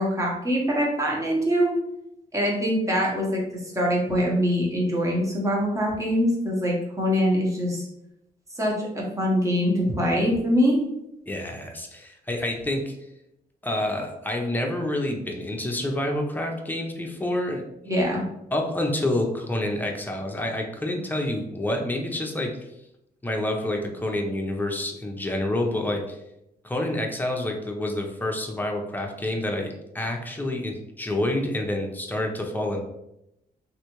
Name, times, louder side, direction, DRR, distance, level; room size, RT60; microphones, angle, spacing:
voice 1, 0.0-1.7 2.3-3.4 3.7-7.9 8.5-10.8 17.9-18.2, equal, 20° right, -3 dB, 1.1 m, -23 dB
voice 2, 11.3-13.0 13.6-17.6 18.5-22.5 23.2-26.2 26.6-32.8, left 1 dB, 10° left, 1 dB, 0.7 m, -28 dB
3.2 x 2.7 x 3.0 m, 0.84 s
cardioid pair, 75°, 17 cm